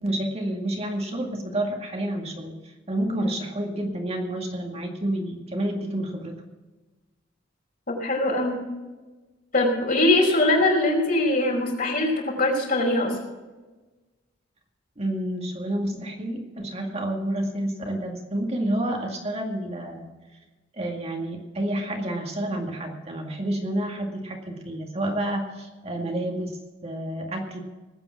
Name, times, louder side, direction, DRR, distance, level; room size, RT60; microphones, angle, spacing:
voice 1, 0.0-6.4 15.0-20.1 20.7-27.6, right 1 dB, 35° right, 2 dB, 2.2 m, -29 dB
voice 2, 7.9-8.6 9.5-13.1, left 2 dB, 50° left, -1 dB, 5.1 m, -22 dB
19.5 x 8.9 x 5.9 m, 1.2 s
head